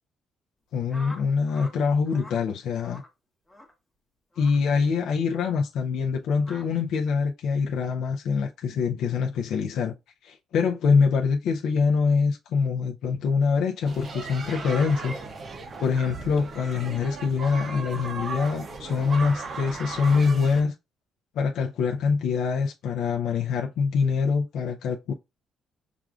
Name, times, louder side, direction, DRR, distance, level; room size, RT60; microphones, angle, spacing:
voice 1, 0.7-3.0 4.4-9.9 10.2-15.2 15.8-20.7 21.3-25.1, left 5 dB, 70° left, 0.4 m, -24 dB
sound 1, 0.9-1.8 2.1-2.4 2.8-3.1 3.5-3.7 4.3-4.6 5.3-5.5 6.4-6.7, left 1 dB, 5° left, 0.8 m, -45 dB
sound 2, 13.9-20.6, right 4 dB, 35° right, 0.5 m, -36 dB
6.0 x 2.4 x 2.3 m
cardioid pair, 145°, 0 cm